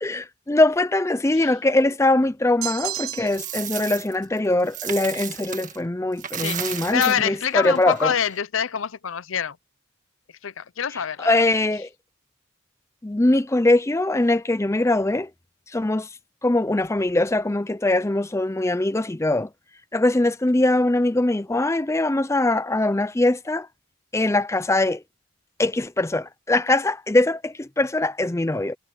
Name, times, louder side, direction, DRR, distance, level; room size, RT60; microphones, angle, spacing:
voice 1, 0.0-8.1 11.2-11.9 13.0-15.3 15.7-16.1 16.4-19.5 19.9-23.7 24.1-25.0 25.6-28.8, left 2 dB, 15° left, 0.4 m, -22 dB
sound 1, 2.6-3.6, right 13 dB, 75° right, 1.6 m, -32 dB
Coin (dropping), 3.0-5.8 6.1-8.4, right 9 dB, 35° right, 1.7 m, -34 dB
voice 2, 6.4-9.6 10.4-11.4, left 8 dB, 65° left, 0.6 m, -26 dB
head